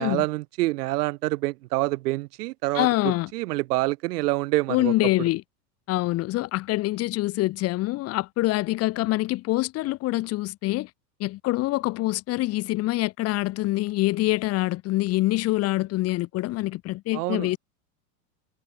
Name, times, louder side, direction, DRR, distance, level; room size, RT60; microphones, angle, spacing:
voice 1, 0.0-4.9 17.1-17.6, right 19 dB, 80° right, 0.8 m, -27 dB
voice 2, 2.7-3.3 4.7-5.4 5.9-10.9 11.2-17.6, left 18 dB, 30° left, 1.1 m, -25 dB
supercardioid pair, 150°, 46 cm